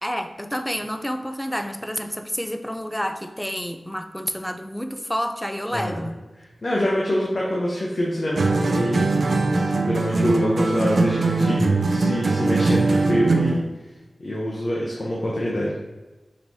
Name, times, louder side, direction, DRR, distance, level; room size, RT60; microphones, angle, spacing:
voice 1, 0.0-6.2, equal, 5° left, 8 dB, 0.3 m, -29 dB
voice 2, 5.7-6.1 6.4-9.1 9.7-13.6 14.2-15.8, equal, 50° left, -4 dB, 0.7 m, -25 dB
sound 1, 8.4-13.7, right 3 dB, 70° right, 0.4 m, -21 dB
5.2 x 3.0 x 2.7 m, 1.2 s
wide cardioid pair, 70°, 0 cm